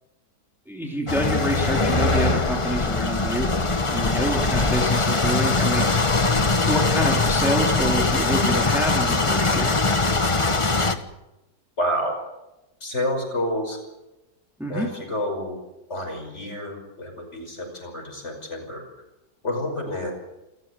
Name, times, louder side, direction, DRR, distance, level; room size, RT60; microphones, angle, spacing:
voice 1, 0.7-3.5 3.9-5.9 6.7-9.8 14.6-14.9, equal, ahead, 0 dB, 2.9 m, -27 dB
sound 1, 1.1-11.0, left 3 dB, 20° left, 1.0 m, -21 dB
voice 2, 11.8-12.1 12.8-13.8 14.7-15.6 15.9-18.8 19.4-20.1, left 1 dB, 40° left, 4 dB, 5.9 m, -29 dB
28.5 x 14.5 x 8.2 m, 0.97 s
omnidirectional pair, 1.9 m